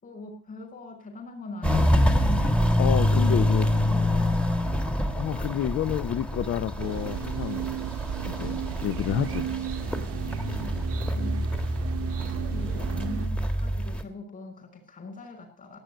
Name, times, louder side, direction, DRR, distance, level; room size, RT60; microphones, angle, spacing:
voice 1, 0.0-2.5 3.2-4.4 8.3-9.3 9.8-11.5 12.0-15.8, left 2 dB, 30° left, 4 dB, 5.6 m, -42 dB
Walk footsteps, 1.6-14.0, left 1 dB, 5° left, 1.6 m, -26 dB
voice 2, 2.8-3.7 5.1-7.7 8.2-9.5, left 10 dB, 50° left, 12 dB, 0.8 m, -29 dB
sound 1, 6.8-13.3, right 11 dB, 50° right, 0.9 m, -35 dB
16.5 x 9.4 x 6.7 m, 0.42 s
cardioid pair, 170°, 29 cm